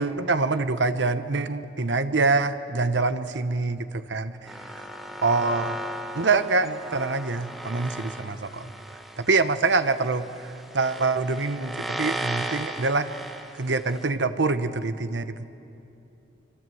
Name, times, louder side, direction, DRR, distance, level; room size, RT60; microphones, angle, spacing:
voice 1, 0.0-4.9 5.2-5.8 6.1-8.7 9.2-10.5 10.7-13.1 13.6-15.4, right 3 dB, 80° right, 11 dB, 1.0 m, -25 dB
sound 1, 4.5-14.0, right 1 dB, ahead, 1.3 m, -36 dB
26.0 x 24.5 x 7.8 m, 2.9 s
head